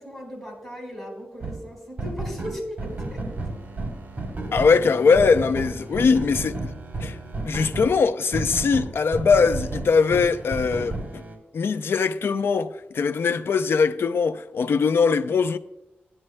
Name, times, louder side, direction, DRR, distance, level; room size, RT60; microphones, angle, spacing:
voice 1, 0.0-3.3, equal, 5° left, 4.6 m, -37 dB
sound 1, 1.4-1.6 2.0-7.9 8.3-11.4, right 2 dB, 40° right, 3.4 m, -32 dB
voice 2, 4.5-6.7 7.0-7.2 7.5-11.2 11.5-15.6, left 5 dB, 75° left, 0.5 m, -21 dB
16.5 x 11.0 x 2.2 m
wide cardioid pair, 85°, 4 cm